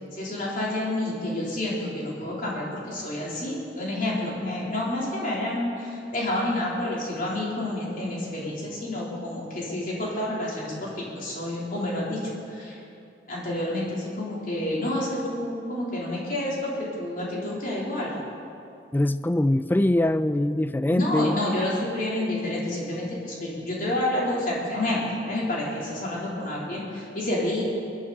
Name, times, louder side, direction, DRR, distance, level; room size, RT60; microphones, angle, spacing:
voice 1, 0.2-12.8 13.3-18.2 20.9-27.6, left 1 dB, 50° left, -5 dB, 3.5 m, -29 dB
voice 2, 18.9-21.4, left 1 dB, 10° left, 13 dB, 0.3 m, -23 dB
22.0 x 11.0 x 4.1 m, 2.5 s
head